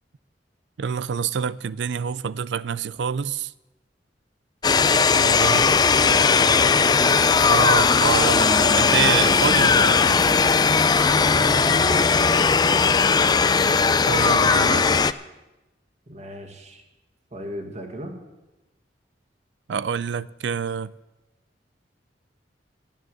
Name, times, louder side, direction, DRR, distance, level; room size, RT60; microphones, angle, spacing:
voice 1, 0.8-3.5 5.1-5.6 7.5-10.2 14.1-14.8 19.7-20.9, right 7 dB, 75° right, 0.4 m, -26 dB
sound 1, 4.6-15.1, left 5 dB, 25° left, 0.4 m, -18 dB
voice 2, 5.5-7.3 11.1-13.5 16.1-16.8 17.3-18.1, right 1 dB, 40° right, 1.9 m, -36 dB
12.5 x 9.3 x 7.9 m
head